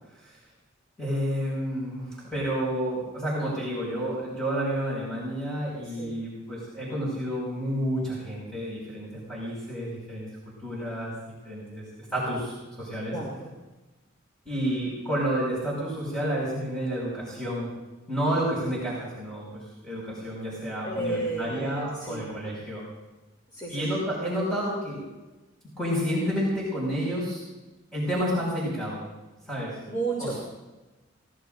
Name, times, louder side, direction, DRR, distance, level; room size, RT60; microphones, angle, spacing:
voice 1, 1.0-10.2 10.6-11.1 11.4-13.1 14.4-17.7 18.1-19.4 19.8-22.8 23.7-25.0 25.8-27.4 27.9-29.0 29.5-29.8 30.2-30.4, equal, 5° left, -7 dB, 6.0 m, -30 dB
voice 2, 13.1-13.5 20.8-22.2 23.5-23.8 29.9-30.4, right 3 dB, 20° left, -5 dB, 3.1 m, -32 dB
23.5 x 19.5 x 2.7 m, 1.1 s
head